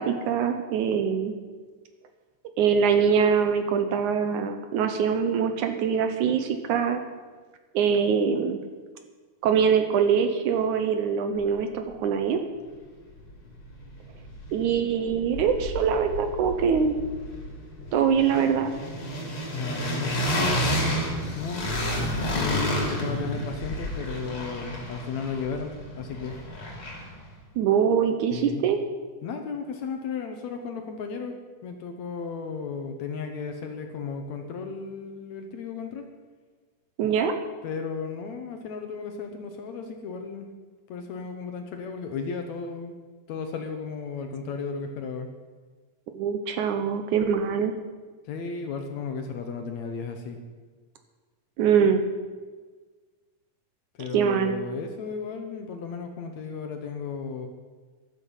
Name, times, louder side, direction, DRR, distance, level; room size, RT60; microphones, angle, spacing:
voice 1, 0.0-1.3 2.6-7.0 7.7-8.6 9.4-12.4 14.5-17.0 17.9-18.7 27.6-28.8 37.0-37.3 46.1-47.7 51.6-52.0 54.1-54.6, right 7 dB, 70° right, 7 dB, 2.1 m, -23 dB
sound 1, 13.3-13.4 13.6-14.8 15.0-27.2, equal, 40° left, 3.4 m, -31 dB
voice 2, 19.5-20.2 21.4-26.4 28.3-28.7 29.2-31.4 31.6-36.1 37.6-40.5 40.9-42.9 43.3-45.3 48.2-50.4 53.9-57.5, left 5 dB, 65° left, 5 dB, 2.0 m, -34 dB
14.0 x 12.0 x 5.6 m, 1.4 s
omnidirectional pair, 3.9 m